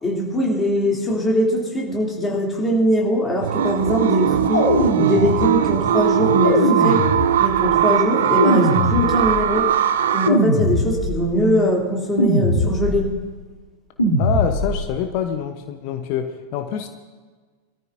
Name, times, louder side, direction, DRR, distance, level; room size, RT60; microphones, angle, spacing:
voice 1, 0.0-4.7 5.0-7.1 7.4-9.7 10.1-13.1, equal, 15° left, -2 dB, 3.2 m, -21 dB
sound 1, 3.4-10.3, right 10 dB, 60° right, 0.7 m, -20 dB
sound 2, 4.5-5.7 6.4-7.6 8.4-9.5 10.3-11.3 12.2-13.1 14.0-14.9, equal, 80° left, 2.9 m, -21 dB
voice 2, 14.2-16.9, left 8 dB, 45° left, 6 dB, 1.0 m, -25 dB
23.5 x 13.5 x 2.8 m, 1.4 s
figure-of-eight pair, 90°, 0 cm